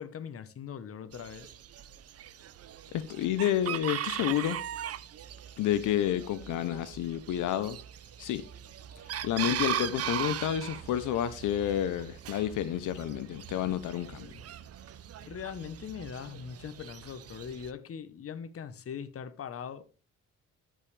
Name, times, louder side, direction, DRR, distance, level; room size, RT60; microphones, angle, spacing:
voice 1, 0.0-1.5 15.2-20.0, left 7 dB, 50° left, 1.0 m, -41 dB
Chicken rooster, 1.1-17.7, right 10 dB, 55° right, 0.7 m, -39 dB
voice 2, 2.9-4.6 5.6-7.8 8.2-8.4 9.2-14.3, left 11 dB, 80° left, 0.7 m, -30 dB
13.0 x 5.6 x 3.3 m
cardioid pair, 90°, 30 cm